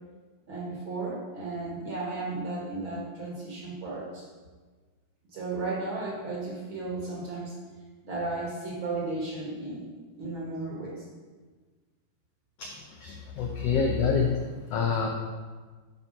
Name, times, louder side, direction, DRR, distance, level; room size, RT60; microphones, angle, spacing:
voice 1, 0.5-4.2 5.3-7.5 8.0-11.0, right 2 dB, 50° right, -4 dB, 1.7 m, -34 dB
voice 2, 12.6-14.4 14.7-15.1, left 5 dB, 80° left, 1 dB, 1.4 m, -27 dB
9.5 x 4.5 x 5.0 m, 1.4 s
omnidirectional pair, 3.6 m